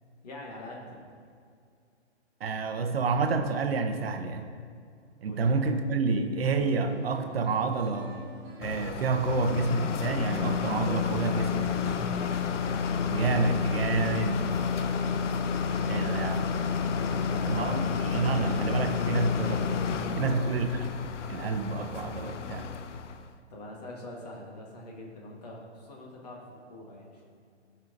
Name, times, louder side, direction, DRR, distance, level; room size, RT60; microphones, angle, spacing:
voice 1, 0.2-1.0 5.3-5.5 11.2-11.7 12.1-12.3 14.4-16.3 17.3-17.9 20.1-20.7 23.5-27.2, left 1 dB, 35° left, -1 dB, 1.4 m, -44 dB
voice 2, 2.4-4.5 5.2-8.1 8.6-12.0 13.1-14.4 15.9-16.4 17.5-19.9 20.2-20.7 21.0-22.7, right 4 dB, 55° right, 6 dB, 0.8 m, -29 dB
sound 1, 6.5-11.2, right 2 dB, 20° right, 0.9 m, -50 dB
sound 2, 8.6-23.3, left 5 dB, 90° left, 0.6 m, -30 dB
15.5 x 5.5 x 2.6 m, 2.3 s
hypercardioid pair, 175°, 35 cm